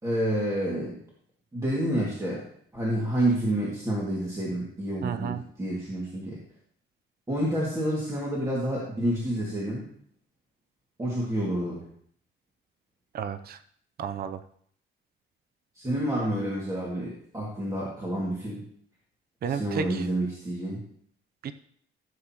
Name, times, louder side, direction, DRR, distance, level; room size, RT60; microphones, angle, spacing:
voice 1, 0.0-1.0 1.5-2.4 2.7-6.4 7.3-9.9 11.0-11.9 15.7-18.6 19.5-20.8, right 1 dB, 15° right, -5 dB, 2.1 m, -29 dB
voice 2, 5.0-5.4 13.1-13.6 14.0-14.4 19.4-20.1 21.4-21.5, right 7 dB, 50° right, 11 dB, 0.6 m, -31 dB
15.5 x 7.6 x 3.0 m, 0.63 s
cardioid pair, 160°, 21 cm